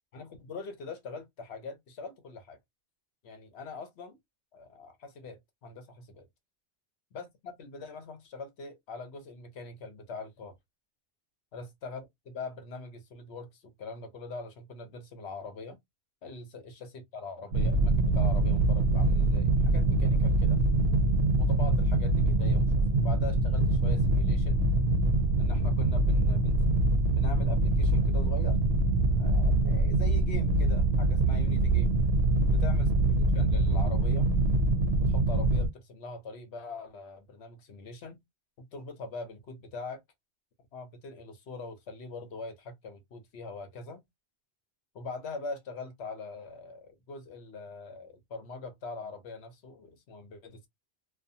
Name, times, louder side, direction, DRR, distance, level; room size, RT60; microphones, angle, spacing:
voice 1, 0.1-2.6 3.2-4.2 4.5-6.3 7.1-10.5 11.5-15.8 16.2-20.6 21.4-24.6 25.4-26.6 27.1-28.6 29.2-31.9 32.5-32.9 33.2-34.3 35.0-38.2 38.6-40.0 40.7-44.0 44.9-50.7, left 3 dB, 75° left, 1.0 m, -42 dB
sound 1, 17.5-35.7, right 2 dB, 70° right, 0.8 m, -24 dB
2.5 x 2.3 x 2.6 m
omnidirectional pair, 1.1 m